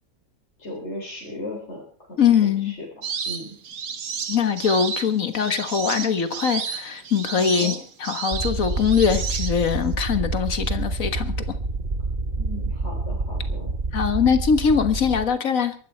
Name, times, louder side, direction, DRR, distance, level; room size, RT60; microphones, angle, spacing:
voice 1, 0.6-1.8 2.1-2.3 2.6-2.9 3.3-3.6 7.3-7.8 12.4-13.7, left 1 dB, 50° left, 4.1 m, -36 dB
voice 2, 2.2-2.8 4.3-7.7 8.0-11.3 13.9-15.7, left 7 dB, 65° left, 1.7 m, -22 dB
sound 1, 3.0-9.9, right 6 dB, 80° right, 1.8 m, -32 dB
sound 2, 8.3-15.3, right 3 dB, 35° right, 1.7 m, -28 dB
23.0 x 12.5 x 4.4 m
omnidirectional pair, 1.5 m